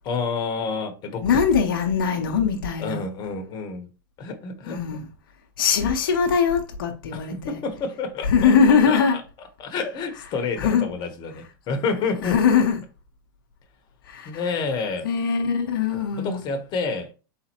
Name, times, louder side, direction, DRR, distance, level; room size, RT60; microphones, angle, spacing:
voice 1, 0.0-1.3 2.8-3.9 4.2-5.0 7.1-9.0 9.6-12.4 14.2-15.1 16.2-17.1, left 4 dB, 40° left, 1.1 m, -29 dB
voice 2, 1.2-3.0 4.7-5.1 5.6-7.6 8.2-9.2 10.6-10.9 12.2-12.8 14.1-14.4 15.0-16.4, left 6 dB, 75° left, 0.9 m, -21 dB
4.1 x 3.7 x 3.0 m
hypercardioid pair, 100°, 12 cm